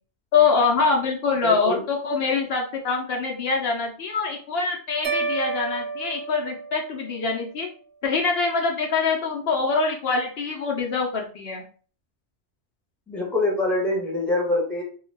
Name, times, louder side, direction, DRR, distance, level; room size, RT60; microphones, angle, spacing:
voice 1, 0.3-7.7 8.0-11.6, left 4 dB, 70° left, 1 dB, 0.8 m, -24 dB
voice 2, 1.4-1.8 13.1-14.8, left 2 dB, ahead, -2 dB, 0.7 m, -24 dB
sound 1, 5.0-7.3, right 4 dB, 50° right, 0.7 m, -30 dB
2.3 x 2.3 x 3.2 m, 0.41 s
omnidirectional pair, 1.1 m